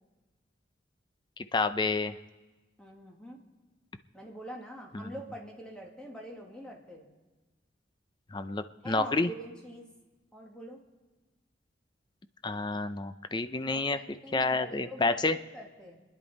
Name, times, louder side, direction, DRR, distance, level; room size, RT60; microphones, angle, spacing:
voice 1, 1.5-2.2 4.9-5.1 8.3-9.3 12.4-14.0 14.3-15.4, left 3 dB, 25° left, 11 dB, 0.5 m, -29 dB
voice 2, 2.8-3.4 4.1-7.1 8.8-9.9 10.3-10.8 13.6-16.0, right 1 dB, 5° left, -1 dB, 1.8 m, -45 dB
29.5 x 10.5 x 4.1 m, 1.2 s
head